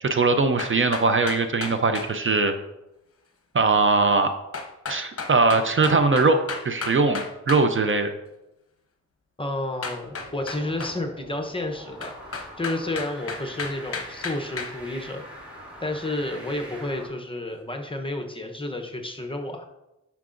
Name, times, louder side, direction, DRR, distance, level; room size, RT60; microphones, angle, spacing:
voice 1, 0.0-2.5 3.5-4.3 4.9-6.4 6.6-8.1, right 3 dB, 40° right, 8 dB, 0.5 m, -21 dB
sound 1, 0.6-2.1 4.5-7.7 9.8-11.0 12.0-14.7, left 4 dB, 45° left, 0.9 m, -33 dB
voice 2, 9.4-12.1 12.6-15.2 15.8-19.7, left 1 dB, 15° left, 3 dB, 0.8 m, -31 dB
sound 2, 10.0-17.1, equal, 5° right, 2.7 m, -43 dB
9.4 x 5.8 x 2.5 m, 0.94 s
wide cardioid pair, 100°, 31 cm